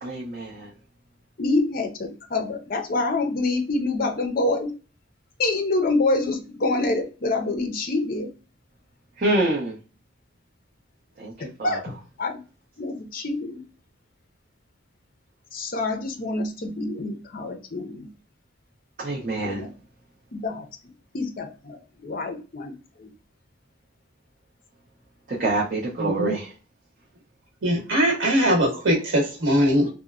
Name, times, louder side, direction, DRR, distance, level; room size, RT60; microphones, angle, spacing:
voice 1, 0.0-0.7 9.2-9.8 11.2-11.3 11.6-11.8 19.0-19.7 25.3-26.5, right 2 dB, 45° right, -5 dB, 0.6 m, -26 dB
voice 2, 1.4-4.7 5.4-8.3 11.4-11.9 12.2-12.3 12.8-13.6 15.5-18.1 19.4-19.7 20.3-20.7 21.1-22.7 23.0-23.1, left 2 dB, 45° left, 6 dB, 0.5 m, -26 dB
voice 3, 26.0-26.3 27.6-29.9, equal, 85° right, -1 dB, 1.1 m, -21 dB
2.8 x 2.0 x 2.4 m, 0.34 s
head